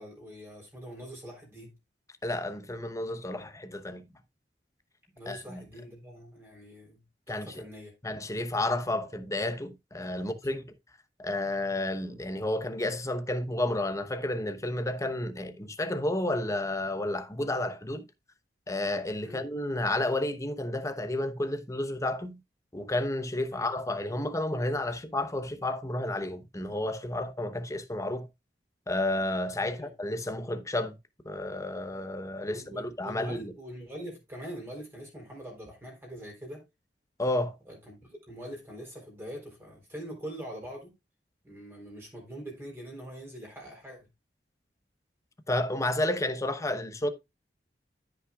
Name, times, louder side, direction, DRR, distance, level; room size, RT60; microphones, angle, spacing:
voice 1, 0.0-1.8 5.1-7.0 7.3-7.9 10.0-10.3 19.2-19.5 23.5-23.6 29.6-29.9 32.5-36.6 37.7-40.9 41.4-44.1, equal, 15° right, 4.0 m, -43 dB
voice 2, 2.2-4.0 5.3-5.6 7.3-7.6 8.0-10.7 11.2-18.0 18.7-22.4 22.7-28.3 28.9-30.9 31.2-33.4 37.2-37.6 45.5-47.1, left 1 dB, 20° left, 0.9 m, -31 dB
13.5 x 5.7 x 2.4 m
head